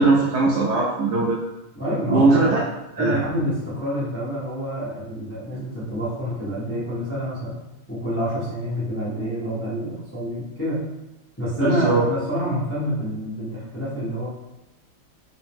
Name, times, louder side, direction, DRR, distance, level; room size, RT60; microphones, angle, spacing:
voice 1, 0.0-1.4 2.1-2.6 3.0-3.2 11.6-12.0, right 3 dB, 70° right, -3 dB, 1.0 m, -19 dB
voice 2, 1.7-2.6 3.0-7.5 7.9-10.8 11.4-14.3, right 1 dB, 20° left, -8 dB, 0.4 m, -27 dB
3.7 x 2.9 x 3.5 m, 0.96 s
omnidirectional pair, 2.2 m